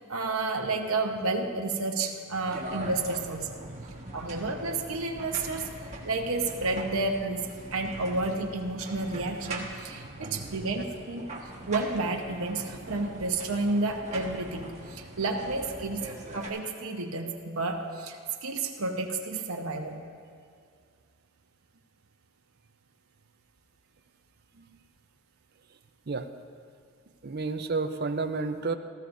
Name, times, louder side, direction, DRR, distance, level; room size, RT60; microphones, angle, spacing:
voice 1, 0.0-3.6 4.1-5.7 6.0-11.3 11.7-20.0, right 3 dB, 85° right, 2 dB, 1.0 m, -31 dB
sound 1, 2.5-16.5, right 2 dB, 35° right, 1.5 m, -42 dB
voice 2, 10.2-10.5 24.6-24.7 26.1-26.3 27.2-28.7, right 3 dB, 50° right, 8 dB, 0.6 m, -31 dB
18.5 x 14.5 x 2.7 m, 2.2 s
head